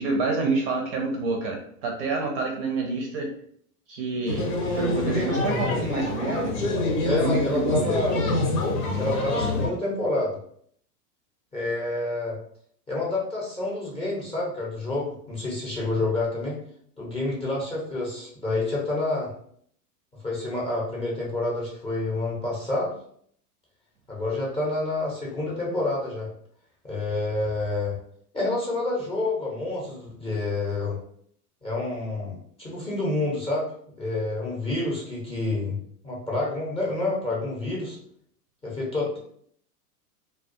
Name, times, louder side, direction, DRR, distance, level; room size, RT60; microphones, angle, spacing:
voice 1, 0.0-3.3 3.9-4.5 4.8-6.5 7.2-8.1, right 3 dB, 40° right, 1 dB, 0.5 m, -28 dB
sound 1, 4.3-9.7, left 2 dB, 85° left, 0.9 m, -26 dB
voice 2, 7.0-8.2 9.0-10.4 11.5-12.4 12.9-16.6 17.0-19.3 20.2-22.9 24.1-26.3 26.8-28.0 28.3-31.0 31.6-33.7 34.0-35.8 36.0-38.0 38.6-39.2, left 2 dB, 10° left, -5 dB, 0.6 m, -28 dB
2.3 x 2.2 x 2.6 m, 0.63 s
hypercardioid pair, 120°, 46 cm